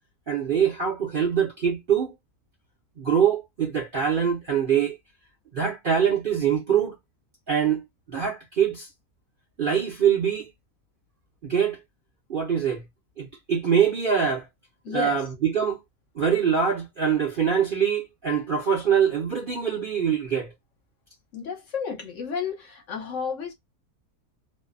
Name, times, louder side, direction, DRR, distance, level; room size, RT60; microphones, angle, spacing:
voice 1, 0.3-2.1 3.0-5.0 5.5-6.9 7.5-8.9 9.6-10.5 11.4-11.8 12.3-12.8 13.2-14.5 14.9-15.8 16.2-20.5, right 7 dB, 50° right, 0.7 m, -24 dB
voice 2, 14.8-15.2 21.3-23.5, left 6 dB, 60° left, 1.1 m, -32 dB
2.6 x 2.1 x 2.4 m
omnidirectional pair, 1.6 m